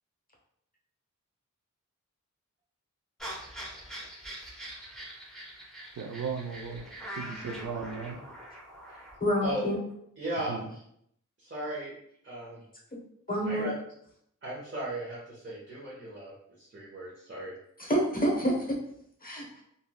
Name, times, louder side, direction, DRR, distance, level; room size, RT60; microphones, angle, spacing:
sound 1, 3.2-9.2, equal, ahead, 0.9 m, -43 dB
voice 1, 6.0-6.9 7.2-8.2 10.5-10.6, right 5 dB, 70° right, 4 dB, 0.5 m, -36 dB
voice 2, 9.2-9.8 13.3-13.7 17.8-18.5 19.2-19.6, equal, 30° left, -2 dB, 0.9 m, -27 dB
voice 3, 10.2-10.6 11.4-11.9 12.2-12.6 13.4-13.7 14.4-16.3 16.6-17.5, right 1 dB, 40° right, -8 dB, 1.0 m, -36 dB
3.1 x 2.6 x 2.2 m, 0.72 s
cardioid pair, 45°, 31 cm